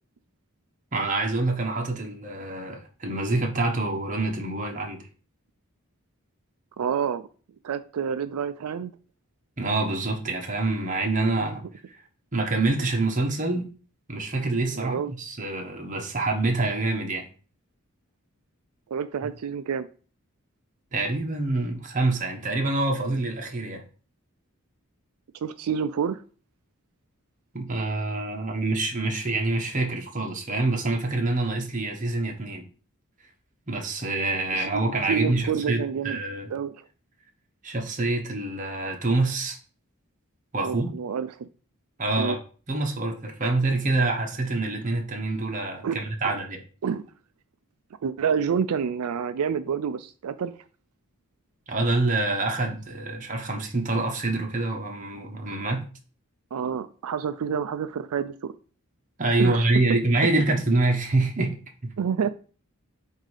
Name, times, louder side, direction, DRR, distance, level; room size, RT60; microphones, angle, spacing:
voice 1, 0.9-5.0 9.6-11.6 11.9-12.0 12.3-13.7 14.1-17.3 19.2-19.3 20.9-23.8 27.5-32.7 33.7-36.5 37.6-39.6 40.5-40.9 42.0-42.4 42.7-46.6 51.7-55.8 59.2-61.9, right 2 dB, 35° right, 1.1 m, -26 dB
voice 2, 6.8-7.3 7.6-8.9 11.5-11.6 14.7-15.1 18.9-19.9 25.4-26.2 34.5-34.7 35.1-36.2 36.5-36.8 40.6-41.5 42.2-42.4 45.8-46.0 46.8-47.0 48.0-50.5 56.5-58.5 59.4-59.6 62.0-62.3, right 7 dB, 85° right, 0.4 m, -28 dB
7.6 x 2.7 x 4.8 m
head